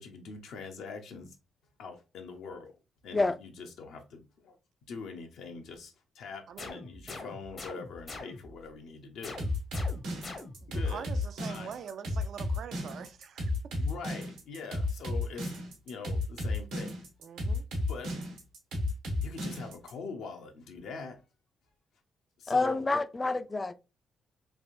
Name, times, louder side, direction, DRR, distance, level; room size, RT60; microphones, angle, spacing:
voice 1, 0.0-1.4 1.8-2.7 3.0-4.6 4.9-9.4 10.7-11.1 11.4-11.8 13.7-15.6 15.8-16.9 17.9-18.1 19.2-21.2 22.4-22.9, left 5 dB, 75° left, 0.7 m, -43 dB
sound 1, 6.6-8.6 9.2-10.8, left 2 dB, 45° left, 0.8 m, -44 dB
sound 2, 9.4-19.9, left 2 dB, 85° right, 1.0 m, -33 dB
voice 2, 10.6-13.5 13.8-13.9 17.2-17.6, right 7 dB, 65° right, 0.3 m, -44 dB
voice 3, 22.5-23.7, left 3 dB, 25° left, 0.3 m, -28 dB
3.2 x 2.5 x 2.6 m
supercardioid pair, 70°, 0 cm